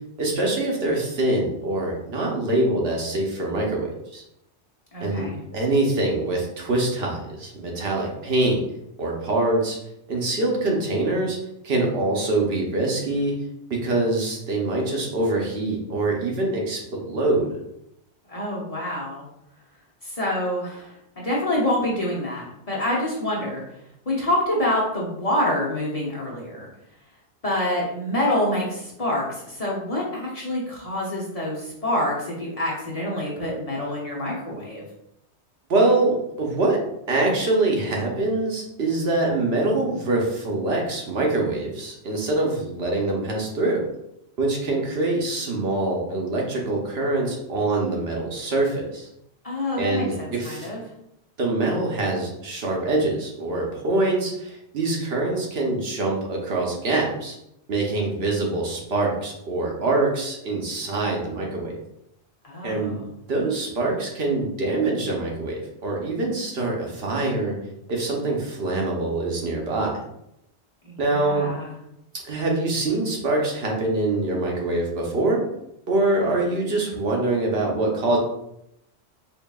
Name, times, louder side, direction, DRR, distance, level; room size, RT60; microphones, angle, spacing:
voice 1, 0.2-4.2 5.0-5.3 5.5-8.6 9.0-9.8 10.1-11.4 11.6-13.3 13.7-17.5 35.7-36.8 37.1-43.8 44.4-49.1 49.8-50.7 51.4-57.4 57.7-61.8 62.6-63.0 63.3-67.6 67.9-69.9 71.0-71.5 72.2-75.4 75.9-78.2, right 2 dB, 65° right, -1 dB, 1.0 m, -24 dB
voice 2, 4.9-5.4 18.3-19.2 20.0-23.6 24.1-26.7 27.4-34.8 49.4-50.8 62.4-63.0 70.8-71.8, left 1 dB, 35° left, -4 dB, 0.8 m, -27 dB
4.6 x 3.1 x 2.3 m, 0.81 s
omnidirectional pair, 1.2 m